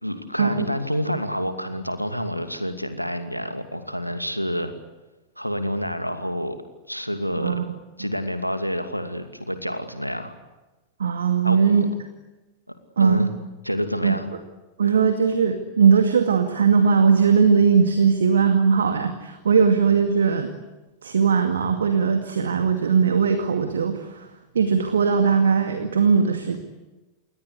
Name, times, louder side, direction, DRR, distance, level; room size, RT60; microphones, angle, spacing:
voice 1, 0.0-4.7 5.4-6.6 6.9-7.6 8.0-10.3 11.4-11.9 12.7-13.3 13.6-14.3, equal, 90° left, 8 dB, 2.5 m, -28 dB
voice 2, 7.4-7.7 11.0-11.9 13.0-13.3 14.0-14.2 14.8-20.5 21.0-24.3 24.5-26.6, right 6 dB, 70° right, 7 dB, 2.2 m, -19 dB
28.5 x 22.0 x 8.3 m, 1.1 s
figure-of-eight pair, 90°, 0 cm